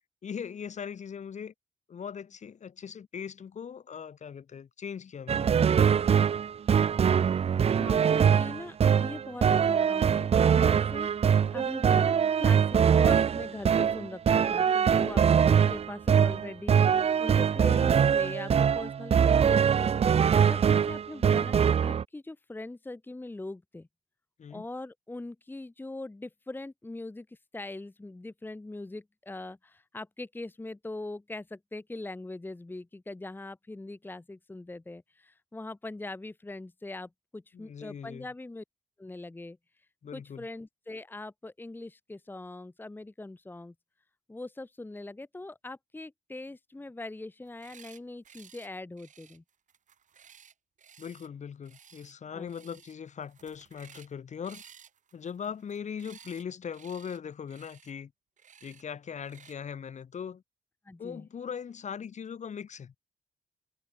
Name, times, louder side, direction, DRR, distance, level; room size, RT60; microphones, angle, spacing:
voice 1, 0.2-1.5 1.9-5.6 20.6-20.9 24.4-24.7 37.5-38.3 40.0-40.5 51.0-54.6 55.1-58.1 58.6-60.4 61.0-62.9, left 7 dB, 55° left, 5.4 m, -40 dB
sound 1, 5.3-22.0, right 7 dB, 45° right, 0.6 m, -23 dB
voice 2, 7.6-23.9 24.5-38.6 39.0-39.9 40.1-43.7 44.3-49.4 52.3-52.5 60.8-61.3, left 2 dB, 15° left, 1.2 m, -42 dB
sound 2, 47.4-48.0 48.3-48.7 49.0-51.3 51.6-52.1 52.5-53.0 53.2-54.1 54.4-56.4 56.7-57.2 57.5-57.9 58.4-58.8 59.2-59.6, right 8 dB, 60° right, 3.5 m, -55 dB
cardioid pair, 110°, 14 cm